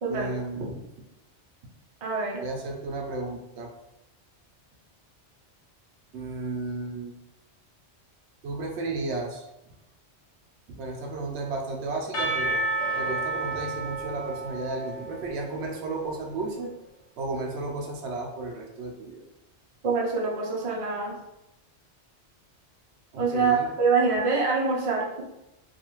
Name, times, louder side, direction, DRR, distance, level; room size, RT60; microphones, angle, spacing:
voice 1, 0.1-0.7 2.4-3.7 6.1-7.2 8.4-9.5 10.7-12.6 13.0-16.7 17.2-19.2 23.1-23.7, right 3 dB, 75° right, 1 dB, 0.9 m, -33 dB
voice 2, 2.0-2.4 19.8-21.1 23.2-25.2, right 4 dB, 40° right, -2 dB, 0.5 m, -25 dB
Percussion / Church bell, 12.1-16.1, right 2 dB, 90° left, 1.1 m, -31 dB
2.6 x 2.4 x 2.9 m, 0.89 s
omnidirectional pair, 1.2 m